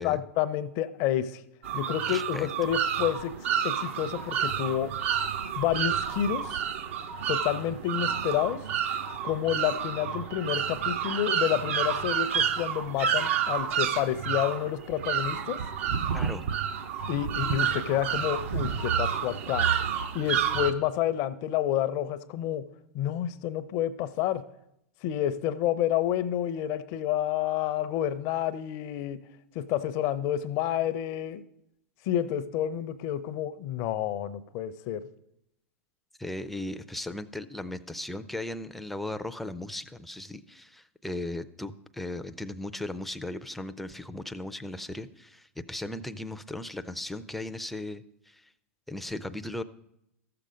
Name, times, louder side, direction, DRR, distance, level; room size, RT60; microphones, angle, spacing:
voice 1, 0.0-1.4 1.7-3.3 3.6-4.9 5.6-6.6 7.3-8.6 9.2-15.6 17.1-19.7 20.1-22.6 22.9-24.4 25.0-29.2 29.5-31.4 32.1-35.0, left 11 dB, 50° left, 13 dB, 0.6 m, -29 dB
sound 1, 1.6-20.7, right 8 dB, 65° right, 0.8 m, -29 dB
voice 2, 2.1-2.5 16.1-16.5 36.2-48.4 48.9-49.6, left 1 dB, ahead, 10 dB, 0.5 m, -37 dB
13.5 x 6.8 x 5.1 m, 0.81 s
hypercardioid pair, 110°, 8 cm